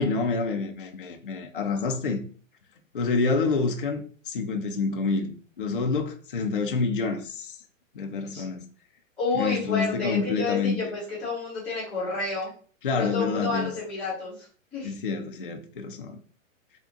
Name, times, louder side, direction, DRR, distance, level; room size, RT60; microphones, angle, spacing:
voice 1, 0.0-2.2 2.9-5.3 5.6-7.6 7.9-8.7 9.3-10.8 12.8-13.7 14.8-16.2, left 4 dB, 40° left, 0.4 m, -27 dB
voice 2, 9.2-12.5 12.9-14.5 14.7-14.9, left 3 dB, ahead, 0.8 m, -30 dB
3.5 x 2.4 x 3.8 m
hypercardioid pair, 180°, 41 cm